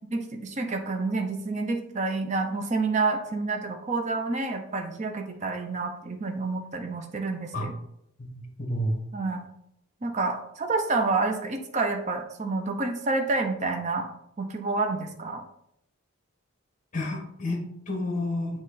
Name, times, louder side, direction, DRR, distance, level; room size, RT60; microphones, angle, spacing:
voice 1, 0.1-7.7 9.1-9.4 10.0-14.1 14.4-15.4, right 3 dB, 35° right, 4 dB, 0.6 m, -28 dB
voice 2, 8.2-9.1 16.9-18.6, left 1 dB, 35° left, 2 dB, 1.2 m, -30 dB
7.5 x 3.1 x 4.0 m, 0.75 s
head